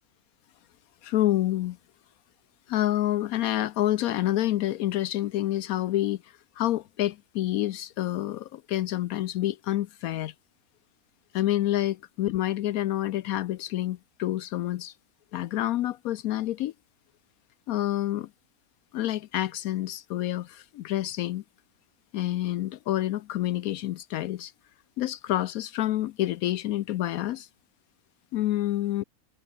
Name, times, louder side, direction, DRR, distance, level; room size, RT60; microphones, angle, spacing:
voice 1, 1.0-1.8 2.7-10.3 11.3-14.9 15.3-16.7 17.7-18.3 18.9-21.4 22.1-24.5 25.0-27.5 28.3-29.0, left 14 dB, 70° left, 1.0 m, -28 dB
omnidirectional pair, 1.6 m